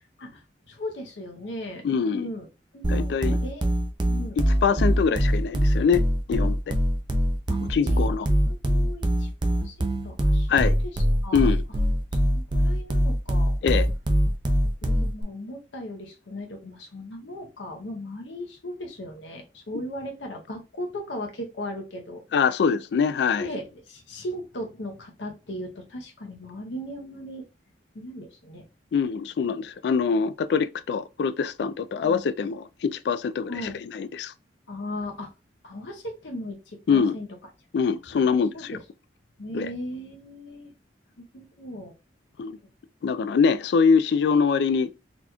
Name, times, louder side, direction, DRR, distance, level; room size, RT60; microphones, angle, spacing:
voice 1, 0.2-1.8 2.1-2.4 2.7-3.7 4.0-4.4 7.5-7.6 7.9-10.5 10.8-11.5 12.2-13.6 14.8-22.2 23.4-27.5 27.9-28.6 32.0-32.2 33.5-33.8 34.7-35.3 35.6-37.3 38.1-38.8 39.4-40.7 41.2-41.9, left 1 dB, 90° left, 0.8 m, -37 dB
voice 2, 1.8-2.3 2.9-3.4 4.6-6.0 6.3-6.8 7.7-8.3 10.5-10.8 11.3-11.6 13.6-13.9 22.3-23.5 28.9-34.3 36.9-37.2 37.7-38.7 39.5-39.7 42.4-42.6 43.0-44.9, left 6 dB, 65° left, 0.3 m, -24 dB
sound 1, 2.8-15.2, equal, 25° right, 0.5 m, -23 dB
4.1 x 2.9 x 2.3 m
head